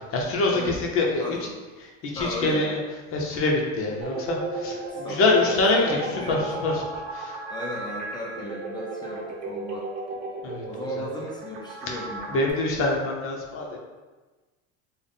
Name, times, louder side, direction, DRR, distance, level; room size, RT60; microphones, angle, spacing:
voice 1, 0.1-1.4 2.1-2.8 3.1-6.0 6.3-6.8 7.1-7.3 10.4-10.6 11.9-12.0 12.3-13.8, left 3 dB, 40° left, -1 dB, 0.7 m, -25 dB
voice 2, 1.2-1.6 2.1-2.7 4.9-6.5 7.5-9.8 10.7-12.4, equal, 15° left, -3 dB, 0.3 m, -36 dB
sound 1, 4.0-12.5, right 3 dB, 55° right, 0.8 m, -34 dB
3.4 x 2.1 x 3.8 m, 1.3 s
supercardioid pair, 115°, 35 cm